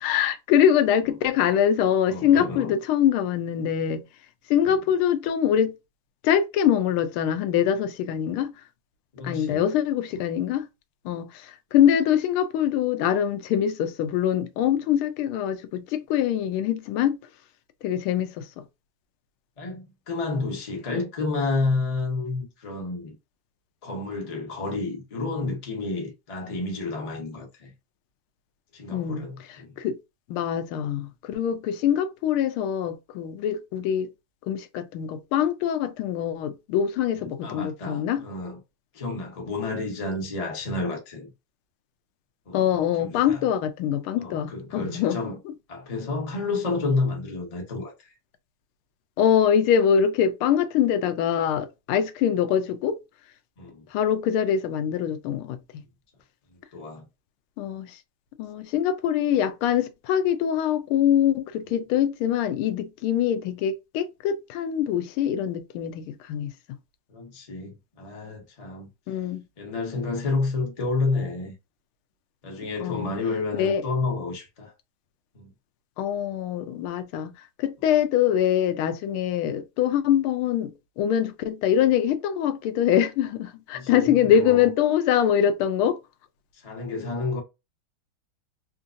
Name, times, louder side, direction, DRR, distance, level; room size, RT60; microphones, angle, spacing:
voice 1, 0.0-4.0 4.5-5.7 6.2-8.5 9.2-10.7 11.0-17.2 17.8-18.5 28.9-30.0 30.3-34.1 34.5-38.2 42.5-45.2 49.2-53.0 53.9-55.6 57.6-58.0 58.4-66.5 69.1-69.4 72.8-73.1 73.5-73.8 76.0-77.3 77.6-86.0, left 9 dB, 85° left, 1.4 m, -24 dB
voice 2, 2.1-2.7 4.6-4.8 9.1-9.6 10.1-10.2 19.6-23.1 23.8-27.7 28.7-29.7 37.4-38.6 38.9-41.3 42.5-42.6 43.0-43.4 44.2-45.4 45.7-47.9 53.6-53.8 56.7-57.0 67.1-68.9 69.6-71.5 72.4-74.7 75.3-75.5 83.7-84.6 86.6-87.4, left 3 dB, 35° left, 0.5 m, -30 dB
3.7 x 2.6 x 2.4 m
omnidirectional pair, 2.3 m